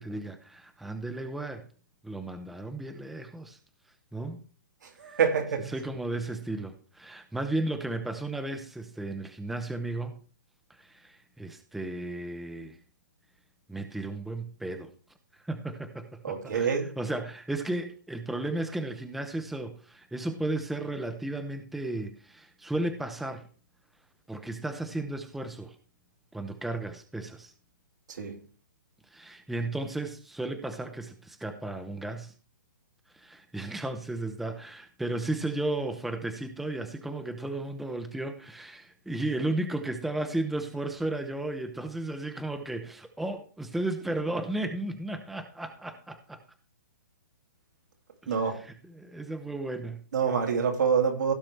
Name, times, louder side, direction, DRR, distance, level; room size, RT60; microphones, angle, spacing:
voice 1, 0.0-1.6 2.0-3.6 4.1-4.4 5.1-5.2 5.6-10.2 10.7-12.8 13.7-14.9 15.4-23.5 24.3-25.8 26.3-27.5 29.1-32.3 33.1-46.4 48.2-50.0, right 2 dB, ahead, 0.7 m, -34 dB
voice 2, 5.0-5.7 16.2-17.0 28.2-28.4 48.3-48.6 50.1-51.3, right 6 dB, 70° right, 2.6 m, -26 dB
16.0 x 6.1 x 3.4 m
hypercardioid pair, 155°, 10 cm